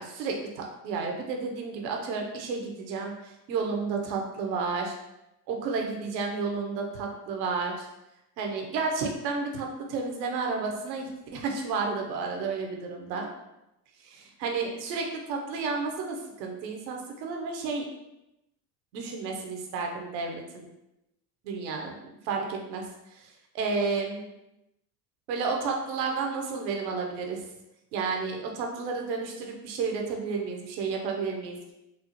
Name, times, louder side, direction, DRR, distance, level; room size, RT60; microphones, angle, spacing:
voice 1, 0.0-4.9 5.5-7.9 8.4-13.3 14.0-17.8 18.9-20.7 21.4-21.9 22.2-22.8 23.1-24.2 25.3-27.4 27.9-31.7, right 4 dB, 90° right, 2 dB, 0.8 m, -31 dB
4.2 x 2.0 x 2.8 m, 0.90 s
supercardioid pair, 85°, 49 cm